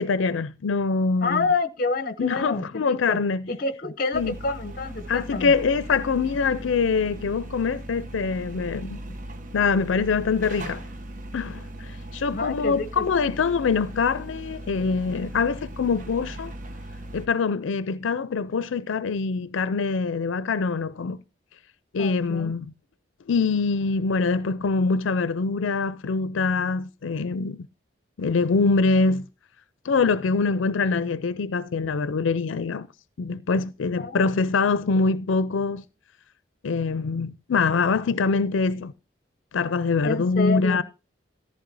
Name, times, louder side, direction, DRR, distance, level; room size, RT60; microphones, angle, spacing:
voice 1, 0.0-1.5 2.2-3.4 4.1-4.3 5.1-9.0 9.5-10.8 11.3-16.5 17.1-21.2 21.9-22.7 23.3-27.7 28.2-29.2 29.8-32.9 33.2-35.8 36.6-38.9 39.5-40.8, left 4 dB, 90° left, 0.5 m, -24 dB
voice 2, 1.2-3.2 3.5-5.5 12.3-13.1 22.0-22.5 34.0-34.3 40.0-40.8, left 3 dB, 45° left, 0.8 m, -28 dB
sound 1, 4.1-17.3, right 1 dB, 45° right, 0.8 m, -39 dB
14.0 x 10.5 x 2.6 m
head